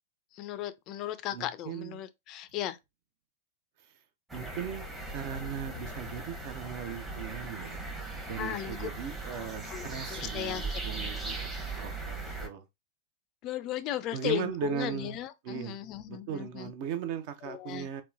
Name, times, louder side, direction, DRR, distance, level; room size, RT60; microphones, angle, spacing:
voice 1, 0.3-2.8 8.4-8.9 9.7-11.2 11.6-11.7 13.4-16.7 17.4-17.9, left 12 dB, 40° left, 0.3 m, -36 dB
voice 2, 1.3-2.0 4.3-7.8 8.3-11.4 11.7-12.6 14.1-15.2 15.4-15.8 16.1-18.0, right 8 dB, 50° right, 0.5 m, -38 dB
sound 1, 4.3-12.5, right 2 dB, 10° right, 0.8 m, -39 dB
2.9 x 2.1 x 2.3 m
hypercardioid pair, 105°, 0 cm